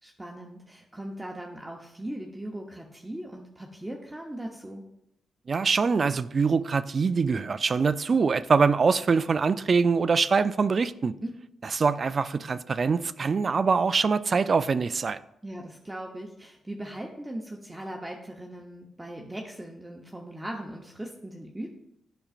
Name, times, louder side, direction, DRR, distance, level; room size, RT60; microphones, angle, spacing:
voice 1, 0.0-4.8 11.2-11.3 15.4-21.7, right 1 dB, 15° right, 0.8 m, -39 dB
voice 2, 5.5-11.1 11.7-15.2, right 5 dB, 50° right, 0.3 m, -24 dB
8.7 x 6.1 x 2.5 m
supercardioid pair, 60°, 0 cm